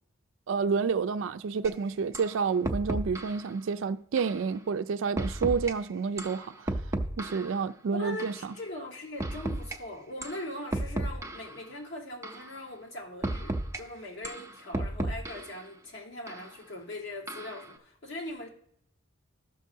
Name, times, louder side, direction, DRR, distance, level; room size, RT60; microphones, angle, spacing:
voice 1, 0.5-6.5 7.2-8.3, right 5 dB, 70° right, 0.4 m, -29 dB
sound 1, 1.6-1.7 2.1-2.3 2.6-3.4 4.2-4.4 5.2-5.7 6.2-7.6 8.2-8.4 9.2-9.8 10.2-10.4 10.7-11.6 12.2-12.5 13.2-13.8 14.2-15.6 16.3-16.4 17.3-17.6, right 1 dB, 15° right, 0.6 m, -33 dB
voice 2, 7.9-18.5, left 1 dB, 60° left, 1.8 m, -41 dB
14.0 x 6.4 x 2.7 m
head